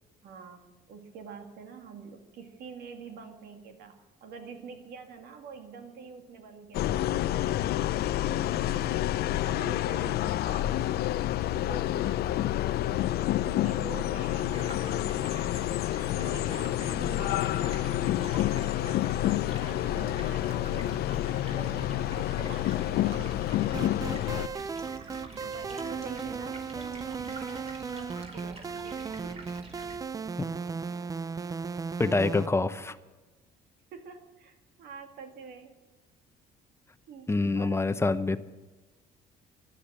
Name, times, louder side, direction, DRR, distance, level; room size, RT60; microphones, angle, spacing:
voice 1, 0.2-9.0 9.4-11.3 11.5-13.1 13.5-15.7 16.1-19.4 19.6-21.1 21.5-25.0 25.3-29.3 32.8-32.9 33.9-35.7 37.1-37.8, right 5 dB, 70° right, 5 dB, 2.2 m, -46 dB
sound 1, 6.7-24.5, left 13 dB, 70° left, 0.6 m, -28 dB
Stream, 14.5-30.0, right 2 dB, 35° right, 4.6 m, -46 dB
sound 2, 23.7-32.5, right 5 dB, 20° right, 0.4 m, -36 dB
voice 2, 32.0-32.9 37.3-38.4, left 3 dB, 15° left, 12 dB, 0.9 m, -26 dB
15.0 x 12.0 x 7.5 m, 1.2 s
cardioid pair, 110°, 17 cm